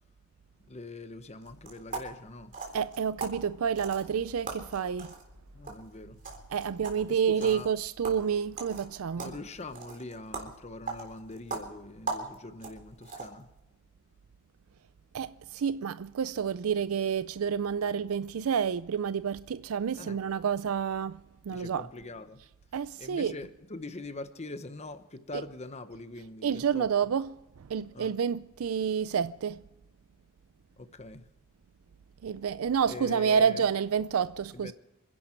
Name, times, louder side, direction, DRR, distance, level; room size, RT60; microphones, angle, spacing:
voice 1, 0.7-2.6 5.5-6.2 7.1-7.7 9.2-13.5 20.0-20.2 21.5-22.4 23.0-26.9 27.9-28.1 30.8-31.3 32.9-33.6 34.5-34.7, left 2 dB, 30° left, 0.9 m, -43 dB
sound 1, 1.4-13.5, right 3 dB, 40° right, 3.6 m, -42 dB
voice 2, 2.7-5.1 6.5-9.3 15.1-21.9 22.7-23.3 25.3-25.4 26.4-27.3 27.6-29.6 32.2-34.7, right 7 dB, 75° right, 0.4 m, -29 dB
27.0 x 11.0 x 4.5 m
head